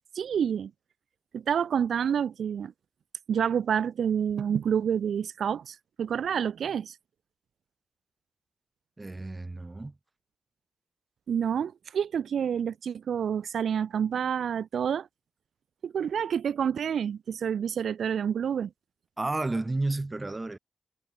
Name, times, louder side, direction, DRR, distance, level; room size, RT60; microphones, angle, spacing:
voice 1, 0.1-0.7 1.3-2.7 3.3-7.0 11.3-15.1 15.8-18.7, right 8 dB, 85° right, 0.9 m, -28 dB
voice 2, 9.0-10.0 19.2-20.6, right 2 dB, 25° right, 5.2 m, -31 dB
wide cardioid pair, 105°, 0 cm